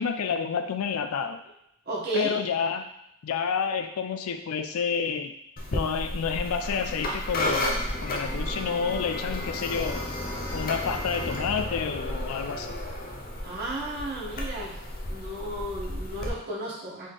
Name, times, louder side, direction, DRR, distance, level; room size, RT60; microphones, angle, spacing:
voice 1, 0.0-1.4 2.1-2.9 3.2-5.3 5.7-10.0 10.5-12.7, left 6 dB, 85° left, 8 dB, 0.4 m, -29 dB
voice 2, 1.8-2.4 13.4-14.7 15.1-17.1, right 1 dB, 45° right, -7 dB, 1.3 m, -33 dB
sound 1, 5.6-16.3, left 1 dB, 40° left, 0.7 m, -32 dB
3.7 x 3.2 x 3.9 m, 0.80 s
head